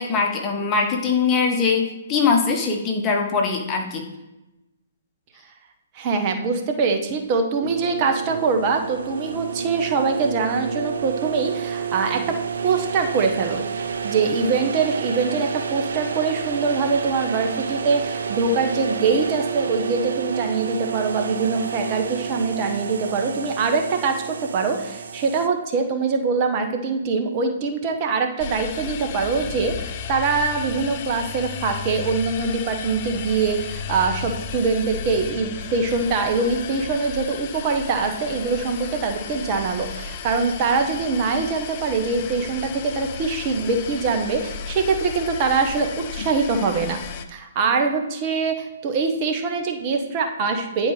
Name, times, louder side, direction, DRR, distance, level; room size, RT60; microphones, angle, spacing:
voice 1, 0.0-4.1, left 5 dB, 25° left, 2 dB, 1.4 m, -22 dB
voice 2, 5.9-12.4 12.6-47.0 47.3-50.9, right 4 dB, 35° right, 4 dB, 1.2 m, -23 dB
sound 1, 7.6-25.5, right 6 dB, 65° right, 0.6 m, -30 dB
sound 2, 28.4-47.3, left 6 dB, 40° left, 0.7 m, -34 dB
10.0 x 4.6 x 4.9 m, 0.98 s
figure-of-eight pair, 130°, 0 cm